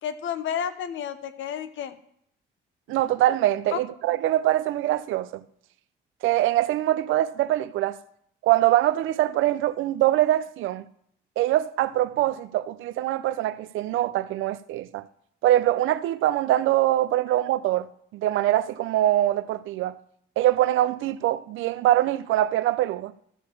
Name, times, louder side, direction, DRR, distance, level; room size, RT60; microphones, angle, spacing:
voice 1, 0.0-2.0 3.7-3.8, left 8 dB, 75° left, 0.9 m, -31 dB
voice 2, 2.9-5.4 6.2-8.0 8.4-10.9 11.4-15.1 15.4-17.9 18.1-20.0 20.4-23.1, right 14 dB, 85° right, 0.5 m, -23 dB
13.5 x 4.9 x 7.0 m
cardioid pair, 90°, 20 cm